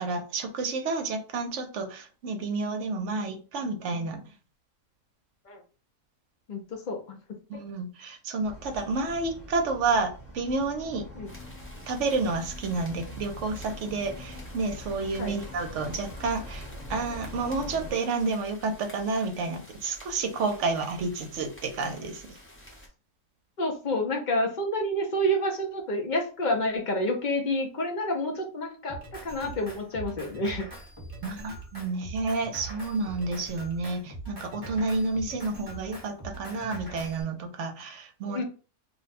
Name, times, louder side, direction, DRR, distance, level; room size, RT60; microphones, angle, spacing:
voice 1, 0.0-4.2 7.5-11.1 11.9-22.4 31.2-38.4, right 3 dB, 65° right, 5 dB, 0.9 m, -30 dB
voice 2, 6.5-7.2 11.2-11.3 15.2-15.3 23.6-30.7 38.3-38.4, equal, 55° left, 2 dB, 0.5 m, -29 dB
sound 1, 8.4-17.9, left 1 dB, 35° left, 0.9 m, -43 dB
sound 2, 11.2-22.9, equal, 10° left, 0.7 m, -50 dB
Drum kit, 28.9-37.2, right 2 dB, 20° right, 1.0 m, -42 dB
2.6 x 2.2 x 4.0 m, 0.36 s
omnidirectional pair, 1.5 m